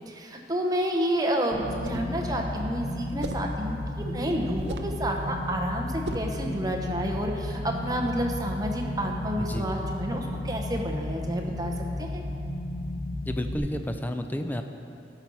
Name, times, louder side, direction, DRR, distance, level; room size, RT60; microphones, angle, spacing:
voice 1, 0.1-11.7 12.0-12.2, equal, 20° right, 1 dB, 0.9 m, -30 dB
sound 1, 1.5-13.6, left 1 dB, 50° left, 1.7 m, -33 dB
sound 2, 1.7-2.2 3.2-3.5 4.6-5.0 6.0-6.4, right 2 dB, 70° right, 0.6 m, -37 dB
voice 2, 9.4-9.7 13.2-14.6, left 1 dB, 10° left, 6 dB, 0.5 m, -31 dB
13.0 x 6.2 x 5.5 m, 2.6 s
head